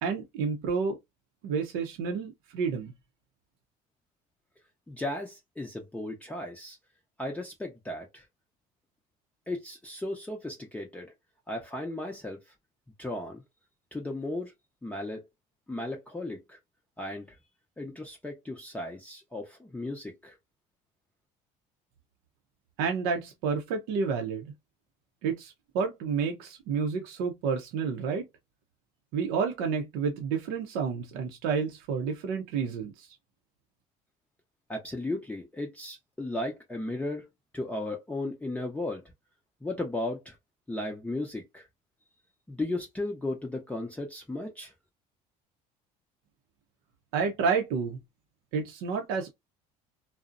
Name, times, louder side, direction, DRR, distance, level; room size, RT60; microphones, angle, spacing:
voice 1, 0.0-1.0 1.4-2.9 22.8-24.5 25.2-28.3 29.1-33.1 47.1-48.0 48.5-49.3, right 5 dB, 85° right, 0.6 m, -30 dB
voice 2, 4.9-6.8 7.2-8.3 9.5-11.1 11.5-12.4 13.0-13.4 13.9-14.5 14.8-15.2 15.7-16.6 17.0-17.4 17.8-20.4 34.7-37.3 37.5-39.0 39.6-40.4 40.7-41.7 42.5-44.7, left 2 dB, 10° left, 0.6 m, -35 dB
2.5 x 2.0 x 2.4 m
supercardioid pair, 100°, 16 cm